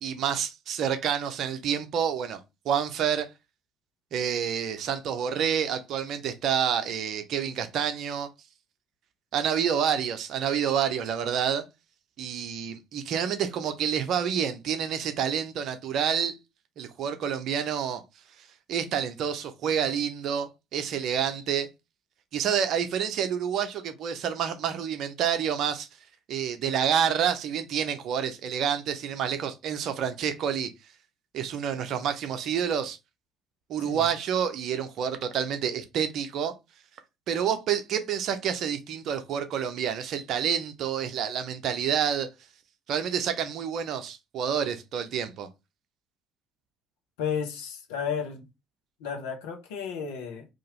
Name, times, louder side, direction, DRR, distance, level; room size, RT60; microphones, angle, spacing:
voice 1, 0.0-3.3 4.1-8.3 9.3-11.6 12.2-16.4 16.8-18.0 18.7-21.7 22.3-25.9 26.3-30.7 31.3-33.0 33.7-36.5 37.3-42.3 42.9-45.5, right 8 dB, 60° right, 0.6 m, -28 dB
voice 2, 47.2-48.5 49.0-50.5, left 7 dB, 75° left, 0.7 m, -33 dB
2.8 x 2.5 x 2.9 m
hypercardioid pair, 55°, 0 cm